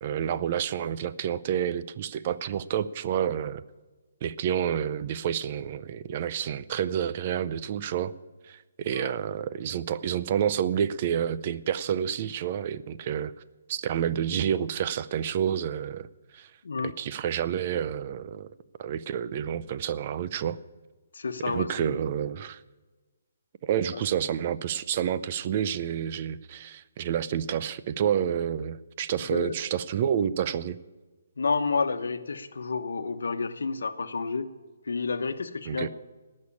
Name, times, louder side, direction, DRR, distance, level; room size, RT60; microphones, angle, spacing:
voice 1, 0.0-3.6 4.2-8.1 8.5-13.3 13.7-16.1 16.3-16.5 16.8-18.5 18.8-20.6 21.5-22.6 23.6-30.8 35.7-35.9, right 9 dB, 35° right, 16 dB, 0.5 m, -29 dB
voice 2, 8.9-9.2 16.6-16.9 21.1-22.0 23.9-24.0 29.3-29.6 31.4-34.5 34.8-35.9, left 4 dB, 85° left, 9 dB, 1.1 m, -30 dB
18.0 x 6.5 x 8.5 m, 1.3 s
hypercardioid pair, 165°, 0 cm